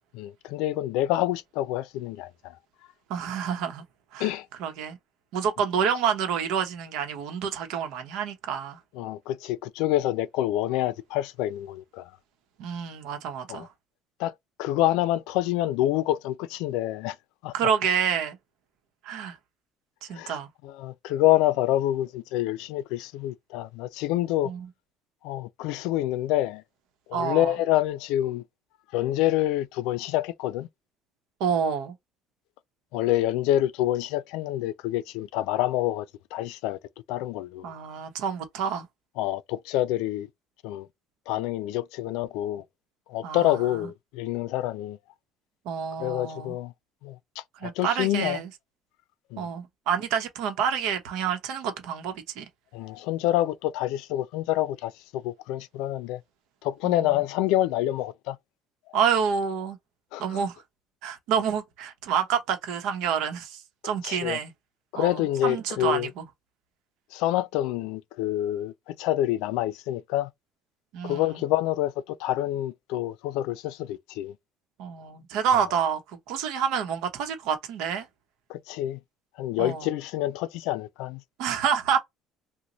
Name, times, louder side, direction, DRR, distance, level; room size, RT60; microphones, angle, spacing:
voice 1, 0.2-2.3 4.2-4.5 9.0-12.0 13.5-13.7 14.2-14.3 14.6-17.1 17.4-17.5 20.1-20.4 20.6-24.5 25.2-26.6 27.1-28.4 28.9-30.7 32.9-36.1 36.3-36.8 37.1-37.7 39.2-40.3 40.6-40.9 41.3-42.6 43.1-45.0 46.0-46.7 47.0-47.2 47.6-48.4 49.3-49.5 52.7-56.2 56.6-58.4 60.1-60.4 64.0-64.4 64.9-66.1 67.1-70.3 71.0-74.3 75.5-75.7 78.5-79.0 79.4-81.2, left 14 dB, 90° left, 0.3 m, -27 dB
voice 2, 3.1-3.8 4.1-4.3 4.6-5.0 5.3-8.8 12.6-13.7 17.5-18.4 19.0-19.4 20.0-20.5 24.4-24.7 27.1-27.5 31.4-31.9 37.6-38.8 43.2-43.9 45.6-46.5 47.6-48.5 49.4-52.5 56.8-57.2 58.9-59.8 60.2-60.6 61.0-64.5 64.9-66.2 70.9-71.4 74.8-76.0 76.3-78.1 79.6-79.9 81.4-82.0, right 7 dB, 75° right, 0.8 m, -28 dB
3.0 x 2.2 x 3.9 m
cardioid pair, 165°, 0 cm